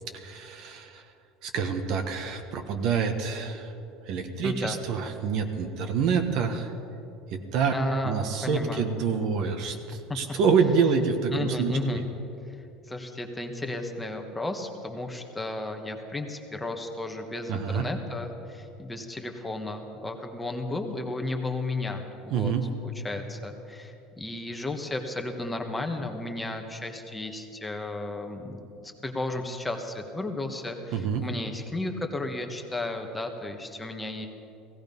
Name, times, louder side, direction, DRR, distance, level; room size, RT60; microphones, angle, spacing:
voice 1, 0.1-1.0 1.4-3.7 4.1-6.7 7.3-7.8 8.0-12.0 17.5-17.9 22.3-22.6 30.9-31.2, right 6 dB, 60° right, 6 dB, 1.5 m, -27 dB
voice 2, 4.4-4.8 7.7-8.2 8.4-8.9 9.9-10.2 11.3-12.1 12.9-22.5 22.8-28.6 29.0-34.3, left 2 dB, 10° left, 4 dB, 1.3 m, -33 dB
16.5 x 16.0 x 5.4 m, 2.7 s
supercardioid pair, 130°, 0 cm